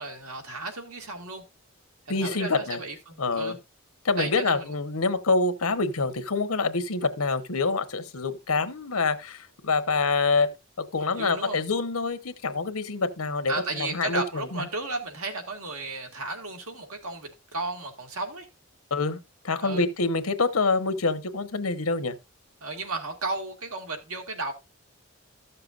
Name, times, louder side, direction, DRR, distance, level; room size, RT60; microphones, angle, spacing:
voice 1, 0.0-1.4 2.1-3.6 4.2-4.7 11.1-11.6 13.5-18.5 19.6-19.8 22.6-24.5, right 3 dB, 80° right, 2.1 m, -34 dB
voice 2, 2.1-2.8 3.2-3.5 4.0-10.5 10.9-14.7 18.9-19.2 19.4-22.1, left 3 dB, 85° left, 1.1 m, -26 dB
13.5 x 6.7 x 2.5 m
head